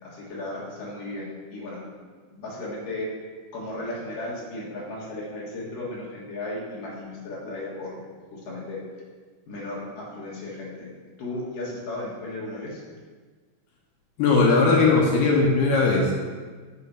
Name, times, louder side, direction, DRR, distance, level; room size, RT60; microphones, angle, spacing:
voice 1, 0.0-1.8 2.3-3.1 3.5-8.0 8.3-8.8 9.5-10.9 11.2-12.8, left 2 dB, 55° left, -5 dB, 2.7 m, -35 dB
voice 2, 14.2-16.1, left 3 dB, 75° left, -2 dB, 2.4 m, -19 dB
6.7 x 5.9 x 5.6 m, 1.5 s
omnidirectional pair, 5.6 m